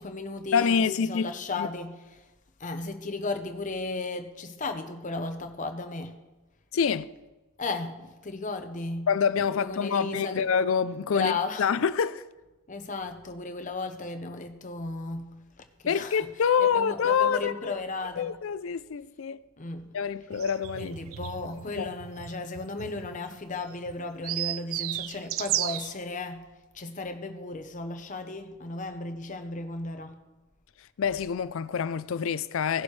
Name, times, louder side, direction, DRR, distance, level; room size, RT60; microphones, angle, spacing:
voice 1, 0.0-2.0 2.6-6.1 7.6-10.4 11.1-11.6 12.7-15.3 15.8-16.3 16.6-18.3 19.6-19.9 20.8-26.4 26.7-30.1, left 3 dB, 35° left, 0.9 m, -35 dB
voice 2, 0.5-1.3 1.6-1.7 6.7-7.1 9.1-11.3 11.6-12.3 15.9-17.8 18.2-19.4 19.9-20.9 21.8-21.9 31.0-32.8, left 7 dB, 70° left, 0.4 m, -26 dB
sound 1, 20.3-25.9, right 14 dB, 70° right, 0.3 m, -34 dB
17.0 x 7.0 x 3.2 m
head